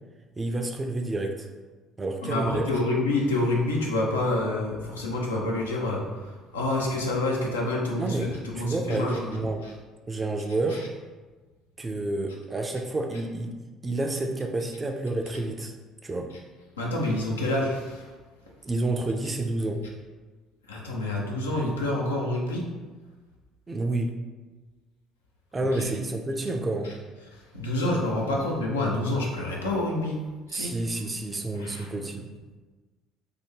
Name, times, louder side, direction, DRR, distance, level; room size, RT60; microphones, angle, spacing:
voice 1, 0.4-1.5 2.0-2.7 8.0-9.6 10.1-10.8 11.8-13.5 13.8-15.7 16.0-16.3 18.6-19.8 23.7-24.1 25.5-26.9 30.5-32.3, right 2 dB, 25° right, 4 dB, 0.4 m, -29 dB
voice 2, 2.2-6.0 6.5-9.2 16.8-17.9 20.7-22.6 25.8-25.9 27.5-30.2 30.5-30.7 31.6-31.9, left 2 dB, 80° left, -2 dB, 0.5 m, -27 dB
3.2 x 2.2 x 3.3 m, 1.3 s
figure-of-eight pair, 55°, 0 cm